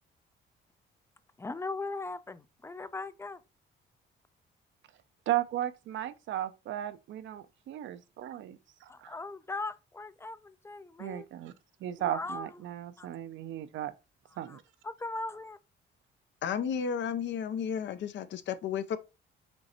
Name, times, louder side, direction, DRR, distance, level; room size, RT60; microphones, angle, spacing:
voice 1, 1.4-3.4 8.9-11.3 12.0-12.5 13.0-13.1 14.5-14.6 14.8-15.6, left 3 dB, 15° left, 0.3 m, -39 dB
voice 2, 5.3-9.1 11.0-11.5 11.8-13.9 14.4-14.6, right 13 dB, 75° right, 0.5 m, -35 dB
voice 3, 16.4-19.0, left 7 dB, 65° left, 0.6 m, -33 dB
5.2 x 3.1 x 2.9 m
cardioid pair, 90°, 20 cm